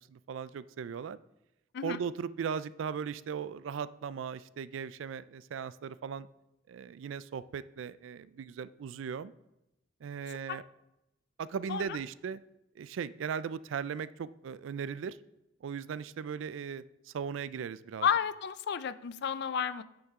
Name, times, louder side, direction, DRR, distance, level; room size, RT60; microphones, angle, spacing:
voice 1, 0.1-1.2 1.8-6.3 6.7-9.3 10.0-10.6 11.4-12.4 12.8-15.2 15.6-18.1, right 7 dB, 80° right, 16 dB, 0.3 m, -38 dB
voice 2, 18.0-19.8, left 7 dB, 60° left, 15 dB, 0.4 m, -31 dB
8.7 x 6.5 x 3.6 m, 0.88 s
head